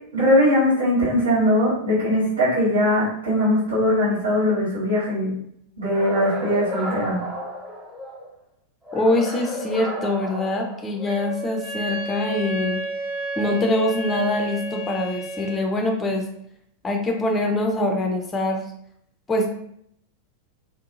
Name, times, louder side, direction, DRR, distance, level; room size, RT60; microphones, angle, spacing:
voice 1, 0.1-5.3 5.8-7.2, left 1 dB, 75° right, -10 dB, 1.3 m, -20 dB
sound 1, 5.8-8.3 8.9-11.3, equal, 15° right, 0.8 m, -33 dB
voice 2, 8.9-12.8 13.4-16.3 16.8-18.6 19.3-19.5, left 1 dB, 15° left, 3 dB, 0.4 m, -24 dB
Wind instrument woodwind instrument, 11.0-15.7, right 2 dB, 45° right, 0.8 m, -31 dB
2.6 x 2.4 x 2.4 m, 0.70 s
figure-of-eight pair, 90°, 0 cm